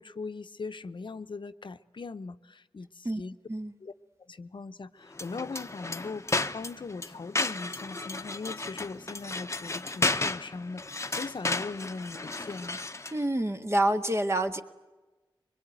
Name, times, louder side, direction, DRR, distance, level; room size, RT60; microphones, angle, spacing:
voice 1, 0.0-3.4 3.8-3.9 4.3-12.8, left 4 dB, 65° left, 10 dB, 0.9 m, -40 dB
sound 1, 5.1-13.2, left 2 dB, 30° left, 0.9 m, -33 dB
voice 2, 13.1-14.6, right 1 dB, 30° right, 6 dB, 1.8 m, -27 dB
23.5 x 21.5 x 9.3 m, 1.2 s
cardioid pair, 55°, 9 cm